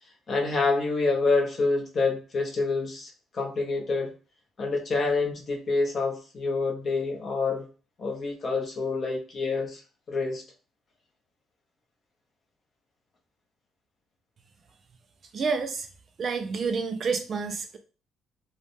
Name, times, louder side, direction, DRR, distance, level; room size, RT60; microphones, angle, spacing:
voice 1, 0.3-4.1 4.6-7.7 8.0-9.8 10.1-10.4, left 3 dB, 30° left, 1 dB, 0.7 m, -27 dB
voice 2, 15.3-15.9 16.2-17.8, right 5 dB, 35° right, 7 dB, 0.3 m, -29 dB
3.2 x 2.1 x 2.5 m, 0.36 s
cardioid pair, 165°, 0 cm